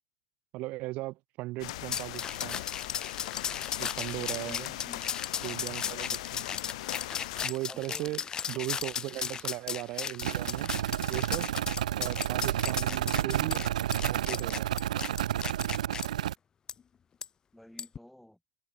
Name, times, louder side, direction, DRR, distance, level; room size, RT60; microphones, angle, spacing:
voice 1, 0.5-2.6 3.8-4.7 5.4-6.4 7.4-8.2 8.5-10.7 11.1-11.5 12.0-13.6 13.9-14.7, right 20 dB, 40° right, 4.7 m, -38 dB
sound 1, 1.6-7.5, left 18 dB, 60° left, 1.7 m, -39 dB
sound 2, 1.9-16.1 16.7-16.8 17.2-17.3 17.8-18.0, left 7 dB, 20° left, 3.2 m, -36 dB
voice 2, 4.4-5.2 7.7-8.1 17.5-18.4, left 1 dB, ahead, 7.7 m, -50 dB
sound 3, 10.2-16.3, right 12 dB, 85° right, 0.8 m, -30 dB
supercardioid pair, 145°, 4 cm